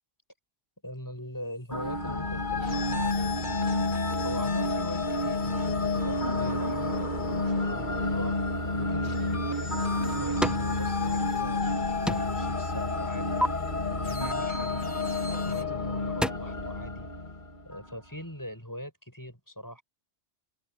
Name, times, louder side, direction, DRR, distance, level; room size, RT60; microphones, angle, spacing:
voice 1, 0.8-3.8 4.2-8.4 8.7-11.7 12.1-14.8 15.5-17.1 17.6-19.8, equal, 15° left, 7.6 m, -42 dB
sound 1, 1.7-17.9, left 2 dB, 45° left, 3.0 m, -29 dB
sound 2, 2.6-8.2 9.0-15.6, left 2 dB, 80° left, 3.2 m, -43 dB
sound 3, 9.6-10.7 11.1-11.8 12.1-12.5 12.9-13.5 15.3-15.5 15.9-16.3, equal, ahead, 1.1 m, -32 dB
open air
omnidirectional pair, 1.1 m